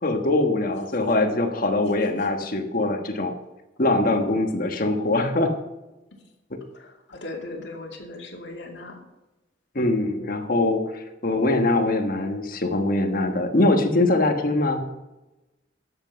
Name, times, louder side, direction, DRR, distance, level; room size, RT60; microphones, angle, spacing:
voice 1, 0.0-3.3 3.8-5.5 9.7-14.8, left 2 dB, 50° left, 5 dB, 1.3 m, -22 dB
voice 2, 6.7-9.0, left 2 dB, 65° left, 0 dB, 2.6 m, -38 dB
12.5 x 8.0 x 5.5 m, 1.0 s
head